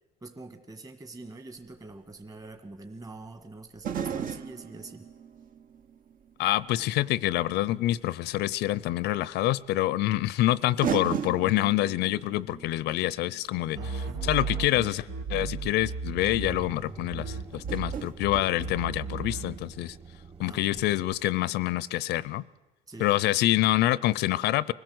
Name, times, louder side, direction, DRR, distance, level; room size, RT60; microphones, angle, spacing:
voice 1, 0.2-5.1 13.7-14.2 20.4-20.9 22.9-23.2, right 2 dB, 20° right, 7 dB, 1.7 m, -44 dB
sound 1, 1.6-1.7 3.8-6.8 7.2-7.3 8.8-8.9 10.2-10.3 10.8-14.9 15.9-16.0 16.3-16.5 17.5-19.4 19.7-19.8, right 8 dB, 55° right, 0.9 m, -37 dB
voice 2, 6.4-13.8 14.2-20.0 20.4-22.4 23.0-24.7, left 15 dB, 80° left, 21 dB, 0.6 m, -26 dB
sound 2, 13.7-16.8 17.1-19.7, right 4 dB, 85° right, 1.7 m, -35 dB
sound 3, 15.6-21.1, right 4 dB, 35° right, 2.8 m, -46 dB
24.5 x 16.5 x 7.9 m, 1.1 s
cardioid pair, 110°, 17 cm